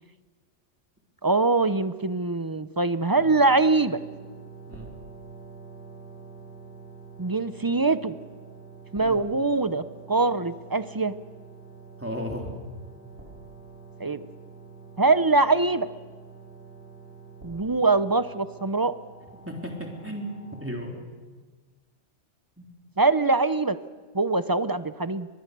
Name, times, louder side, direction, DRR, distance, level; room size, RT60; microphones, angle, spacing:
voice 1, 1.2-4.0 7.2-8.1 8.9-11.1 14.0-14.2 15.0-15.9 17.4-18.9 23.0-23.8 24.1-25.3, right 3 dB, 25° right, 13 dB, 0.5 m, -23 dB
sound 1, 3.1-20.7, right 4 dB, 65° right, 6.0 m, -46 dB
voice 2, 12.0-12.5 19.4-20.2 20.6-21.0 22.6-22.7, equal, 10° right, 0 dB, 3.6 m, -34 dB
23.5 x 21.0 x 6.8 m, 1.4 s
omnidirectional pair, 1.2 m